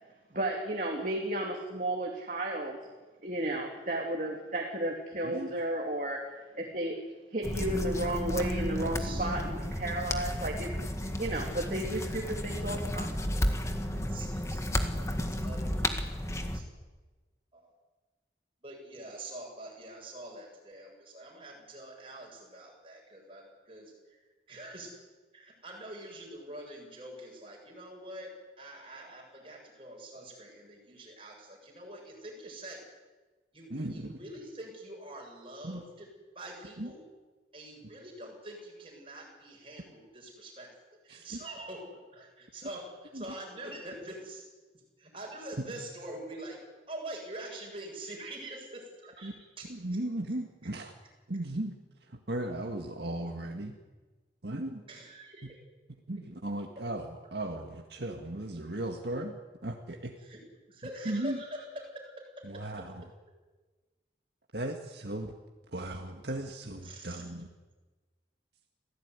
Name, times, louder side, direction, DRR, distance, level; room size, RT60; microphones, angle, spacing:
voice 1, 0.3-2.8 3.2-6.2 6.5-7.0 7.3-10.7 11.1-13.2, right 1 dB, 45° right, 0 dB, 2.9 m, -33 dB
sound 1, 7.4-16.6, left 1 dB, 15° left, 1.8 m, -32 dB
voice 2, 8.7-9.3 13.4-13.6 13.9-16.7 17.5-17.7 18.6-24.9 25.3-28.3 28.6-32.8 33.5-36.1 36.3-37.0 37.5-40.7 41.0-44.4 45.0-46.6 46.9-50.0 50.6-50.7 54.9-55.6 60.2-60.4 60.7-62.1 62.5-62.6 66.8-67.2, right 1 dB, 30° right, 0 dB, 8.0 m, -45 dB
voice 3, 33.7-34.2 35.6-35.8 36.8-36.9 41.1-41.3 43.1-43.2 49.2-49.3 49.7-50.9 51.3-51.7 52.1-53.8 54.4-54.8 56.1-59.3 59.6-60.1 61.1-61.4 62.4-63.0 64.5-65.3 65.7-67.5, right 1 dB, 65° right, 2 dB, 1.9 m, -36 dB
26.0 x 17.0 x 9.7 m, 1.3 s
head